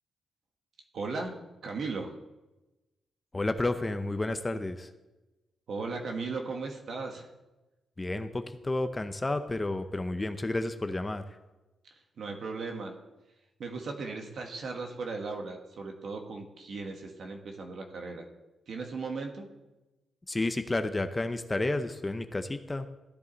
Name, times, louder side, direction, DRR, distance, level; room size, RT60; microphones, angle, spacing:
voice 1, 0.9-2.1 5.7-7.3 11.9-12.9 13.6-18.3 18.7-19.5, right 4 dB, 60° right, 3 dB, 1.5 m, -37 dB
voice 2, 3.3-4.9 8.0-11.2 20.3-22.9, left 2 dB, 15° left, 9 dB, 0.6 m, -31 dB
13.5 x 10.0 x 4.1 m, 1.1 s
cardioid pair, 125°, 0 cm